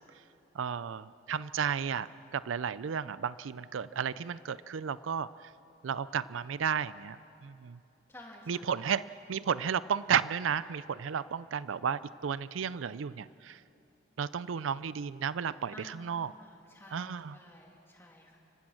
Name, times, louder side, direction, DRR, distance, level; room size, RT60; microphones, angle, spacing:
voice 1, 0.5-2.1 2.3-5.3 5.8-7.2 7.4-7.8 8.5-13.6 14.2-16.3 16.9-17.4, right 7 dB, 90° right, 17 dB, 0.4 m, -33 dB
voice 2, 8.1-8.8 15.7-18.4, left 1 dB, 10° left, -1 dB, 2.6 m, -52 dB
29.0 x 17.0 x 6.4 m, 2.7 s
head